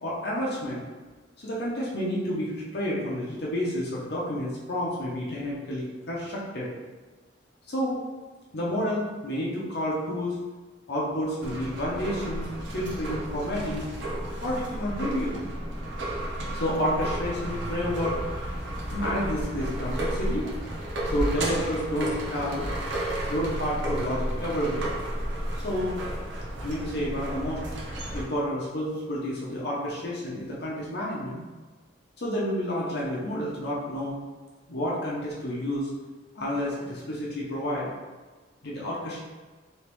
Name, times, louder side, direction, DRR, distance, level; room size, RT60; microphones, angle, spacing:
voice 1, 0.0-0.8 1.4-6.7 7.7-8.0 8.5-10.4 10.9-13.9 14.4-15.4 16.5-18.2 18.9-20.5 21.0-22.7 23.3-24.9 25.6-26.0 26.6-27.6 28.1-31.4 32.2-34.2 34.7-35.9 36.3-37.9 38.6-39.2, equal, 65° left, -5 dB, 0.7 m, -30 dB
sound 1, 11.4-28.2, right 1 dB, 90° right, 0.6 m, -32 dB
sound 2, 16.9-25.2, equal, 40° right, 0.9 m, -41 dB
3.1 x 3.1 x 3.3 m, 1.3 s
head